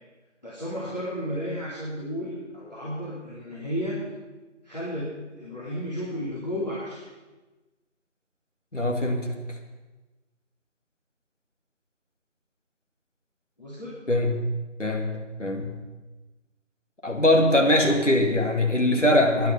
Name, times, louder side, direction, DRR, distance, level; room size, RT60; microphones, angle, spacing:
voice 1, 0.4-4.0 4.6-7.1 13.6-14.0, equal, 35° left, -8 dB, 2.9 m, -33 dB
voice 2, 8.7-9.3 14.1-14.4 14.8-15.7 17.0-19.5, left 1 dB, 75° left, 2 dB, 2.6 m, -22 dB
16.0 x 10.5 x 5.5 m, 1.2 s
figure-of-eight pair, 180°, 37 cm